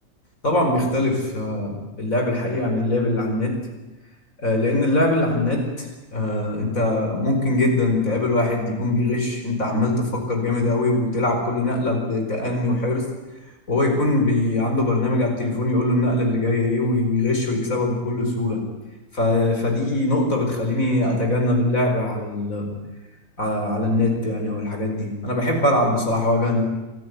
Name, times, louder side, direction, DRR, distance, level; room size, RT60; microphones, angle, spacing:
voice 1, 0.4-3.6 4.4-5.9 6.1-13.0 13.7-18.6 19.1-22.7 23.4-26.6, left 2 dB, 90° left, 3 dB, 5.1 m, -22 dB
26.0 x 14.0 x 9.4 m, 1.1 s
omnidirectional pair, 1.4 m